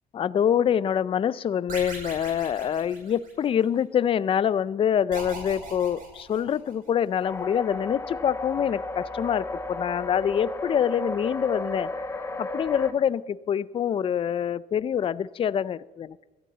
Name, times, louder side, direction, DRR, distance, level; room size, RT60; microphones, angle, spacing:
voice 1, 0.1-11.9 12.4-16.3, left 9 dB, 35° left, 18 dB, 0.4 m, -25 dB
sound 1, 1.7-3.7 5.1-6.9, right 2 dB, 55° right, 5.4 m, -40 dB
sound 2, 7.2-12.9, left 2 dB, 15° left, 1.1 m, -33 dB
16.5 x 12.5 x 4.0 m, 1.2 s
cardioid pair, 110°, 17 cm